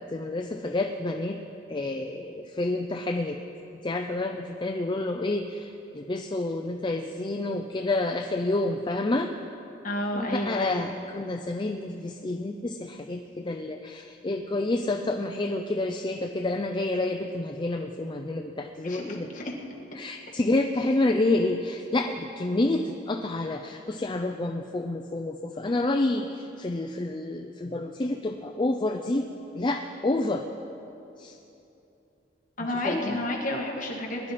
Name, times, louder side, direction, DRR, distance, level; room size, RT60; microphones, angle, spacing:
voice 1, 0.1-1.4 1.7-3.4 3.8-9.3 10.1-19.3 20.0-29.3 29.5-30.4 31.2-31.4 32.8-33.2, left 2 dB, 25° left, 4 dB, 0.5 m, -29 dB
voice 2, 9.8-10.9 18.8-19.6 32.6-34.3, left 1 dB, 45° left, -1 dB, 1.9 m, -31 dB
21.0 x 11.0 x 4.3 m, 2.8 s
head